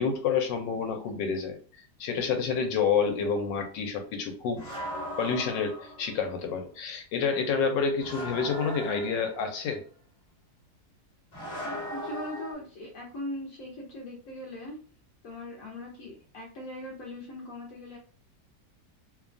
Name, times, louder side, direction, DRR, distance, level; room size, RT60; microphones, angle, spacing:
voice 1, 0.0-1.6 2.0-4.6 5.2-9.8, left 5 dB, 90° left, 5 dB, 1.3 m, -28 dB
sound 1, 4.6-6.2 8.0-9.6 11.3-12.5, equal, 30° left, 1.1 m, -38 dB
voice 2, 11.6-14.8 15.2-18.0, left 1 dB, 65° left, -1 dB, 0.9 m, -40 dB
2.9 x 2.2 x 2.4 m, 0.42 s
omnidirectional pair, 1.9 m